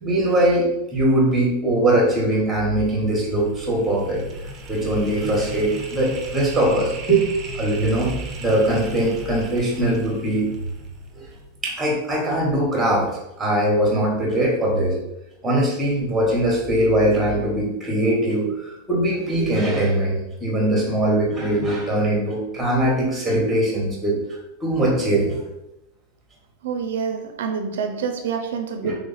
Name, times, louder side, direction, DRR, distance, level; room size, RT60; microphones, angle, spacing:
voice 1, 0.0-4.2 4.7-7.3 7.5-10.5 11.2-11.3 11.6-13.1 13.4-15.0 15.4-24.2 24.6-25.4 28.8-29.0, right 1 dB, 5° right, 1.0 m, -21 dB
sound 1, 2.6-11.7, right 1 dB, 25° right, 0.5 m, -36 dB
voice 2, 26.6-28.9, right 6 dB, 85° right, 0.5 m, -27 dB
3.3 x 2.5 x 4.0 m
supercardioid pair, 160°, 0 cm